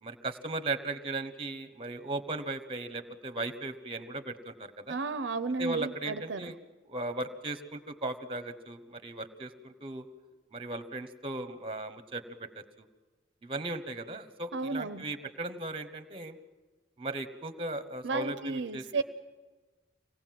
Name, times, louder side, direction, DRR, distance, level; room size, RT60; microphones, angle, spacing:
voice 1, 0.0-5.0 5.6-6.5 6.9-10.1 10.5-12.9 13.4-16.4 17.0-19.0, right 2 dB, 30° right, 10 dB, 1.2 m, -37 dB
voice 2, 4.9-6.5 14.5-15.1 18.0-19.0, right 4 dB, 70° right, 11 dB, 0.7 m, -33 dB
25.5 x 18.5 x 7.7 m, 1.3 s
head